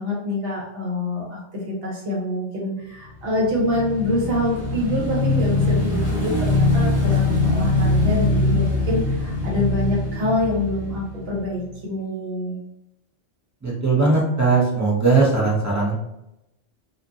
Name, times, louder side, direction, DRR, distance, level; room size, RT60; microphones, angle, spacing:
voice 1, 0.0-12.6, left 1 dB, 55° right, -3 dB, 1.1 m, -26 dB
Motorcycle / Engine, 3.2-11.7, left 2 dB, 50° left, 0.5 m, -22 dB
voice 2, 13.6-15.9, right 3 dB, 15° right, -6 dB, 0.7 m, -19 dB
2.6 x 2.6 x 2.4 m, 0.85 s
omnidirectional pair, 1.2 m